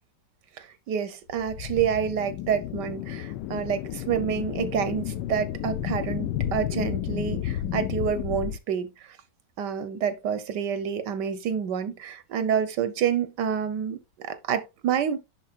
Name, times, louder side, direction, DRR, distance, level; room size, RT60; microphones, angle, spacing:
voice 1, 0.6-9.2 9.6-15.2, right 8 dB, 80° right, 1.5 m, -28 dB
sound 1, 1.3-8.6, left 12 dB, 80° left, 1.2 m, -32 dB
11.0 x 3.9 x 2.4 m
omnidirectional pair, 1.8 m